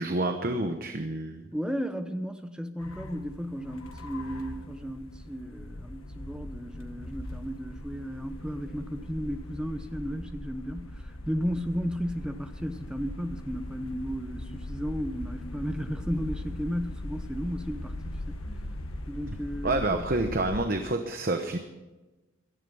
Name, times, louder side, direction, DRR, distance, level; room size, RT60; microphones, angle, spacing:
voice 1, 0.0-1.5 19.6-21.6, right 2 dB, 45° right, 6 dB, 1.0 m, -28 dB
voice 2, 1.5-18.0 18.3-18.6 19.1-20.0, equal, 5° right, 8 dB, 0.8 m, -34 dB
sound 1, 2.8-20.6, left 1 dB, 85° left, 1.6 m, -40 dB
17.0 x 13.0 x 5.5 m, 1.1 s
head